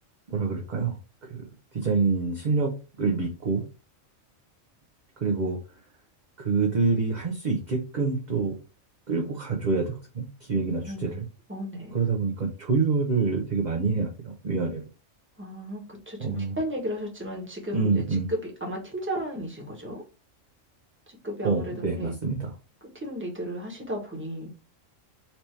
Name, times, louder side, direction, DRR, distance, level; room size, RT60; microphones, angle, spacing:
voice 1, 0.3-1.0 1.2-1.5 1.7-2.7 3.0-3.6 5.2-5.6 6.4-8.6 9.1-11.3 11.9-14.8 16.2-16.5 17.7-18.3 21.4-22.5, right 4 dB, 40° right, 0 dB, 0.7 m, -26 dB
voice 2, 10.9-11.2 11.5-12.0 15.4-18.0 18.3-20.0 21.1-22.1 22.9-24.5, equal, 10° right, -1 dB, 1.3 m, -34 dB
4.3 x 2.9 x 3.2 m, 0.33 s
omnidirectional pair, 1.4 m